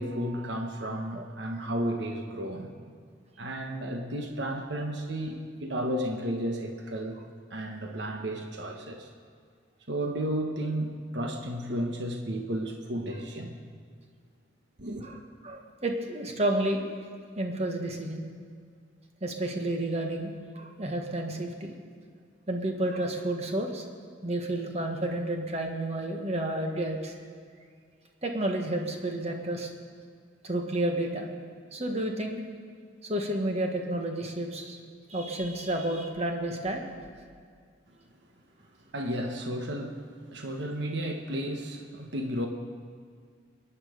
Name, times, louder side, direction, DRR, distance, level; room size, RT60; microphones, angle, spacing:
voice 1, 0.0-2.7 3.4-7.2 7.5-9.1 9.9-13.6 14.8-15.1 38.9-42.5, right 1 dB, 65° right, 3 dB, 1.2 m, -33 dB
voice 2, 15.0-16.8 17.4-18.2 19.2-21.7 22.5-23.8 24.2-27.1 28.2-29.7 30.4-31.3 31.7-32.4 33.0-34.8 35.1-36.8, right 1 dB, 35° right, 3 dB, 1.4 m, -31 dB
22.0 x 10.0 x 5.1 m, 2.1 s
head